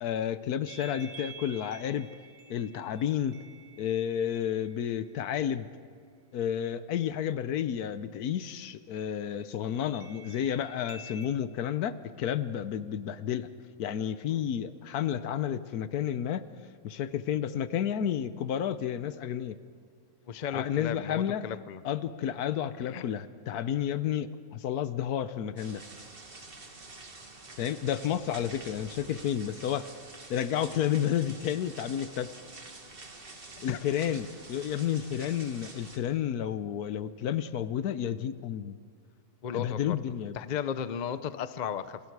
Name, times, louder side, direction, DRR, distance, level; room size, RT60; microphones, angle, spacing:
voice 1, 0.0-2.1 2.5-3.4 3.8-5.7 6.3-13.5 13.8-16.4 16.8-19.6 20.5-21.4 21.8-25.8 27.6-29.9 30.3-32.3 33.6-38.8 39.5-40.4, left 9 dB, 80° left, 13 dB, 1.3 m, -31 dB
sound 1, 0.7-5.2 9.9-11.3, right 3 dB, 70° right, 1.8 m, -50 dB
voice 2, 20.3-21.8 22.8-23.0 33.6-33.8 39.4-40.0 40.3-42.0, left 8 dB, 45° left, 13 dB, 0.6 m, -35 dB
sound 2, 25.6-36.0, right 3 dB, 40° right, 2.0 m, -48 dB
28.0 x 20.5 x 4.8 m, 2.2 s
omnidirectional pair, 1.6 m